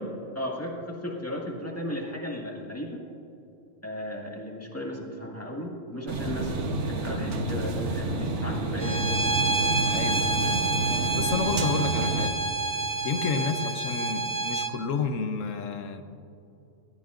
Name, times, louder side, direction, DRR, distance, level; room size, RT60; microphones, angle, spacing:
voice 1, 0.0-3.0 3.8-9.2 13.3-13.5, left 1 dB, 10° left, -2 dB, 1.9 m, -35 dB
sound 1, 6.1-12.3, right 2 dB, 65° right, 1.3 m, -29 dB
Bowed string instrument, 8.8-14.7, right 3 dB, 20° right, 0.5 m, -28 dB
voice 2, 9.9-10.3 11.1-12.4 13.0-16.0, left 5 dB, 80° left, 8 dB, 1.2 m, -30 dB
19.0 x 14.5 x 2.5 m, 2.8 s
omnidirectional pair, 1.3 m